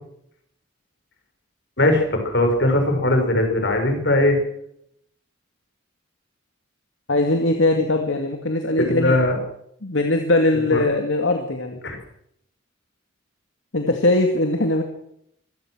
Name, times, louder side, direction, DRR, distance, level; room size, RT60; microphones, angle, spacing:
voice 1, 1.8-4.4 8.8-9.4 10.7-10.8 11.8-12.0, left 1 dB, 60° left, 5 dB, 5.5 m, -19 dB
voice 2, 7.1-9.1 9.8-11.8 13.7-14.8, left 2 dB, 75° left, 4 dB, 2.2 m, -20 dB
25.0 x 16.5 x 6.3 m, 0.74 s
head